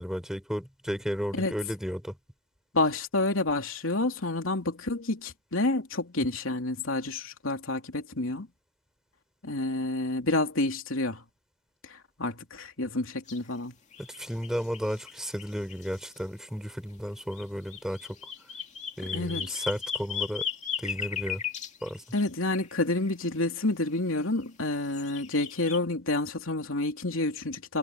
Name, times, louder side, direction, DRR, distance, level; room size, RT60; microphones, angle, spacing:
voice 1, 0.0-2.2 14.0-18.2 19.0-20.4 20.8-21.4 21.8-22.0, equal, 5° right, 4.8 m, -33 dB
voice 2, 2.7-8.5 9.4-11.2 11.8-13.7 19.1-19.6 22.1-27.8, left 2 dB, 75° left, 3.3 m, -29 dB
sound 1, 13.3-13.4 13.9-16.2 17.3-23.2 24.2-25.8, left 8 dB, 35° left, 2.4 m, -37 dB
head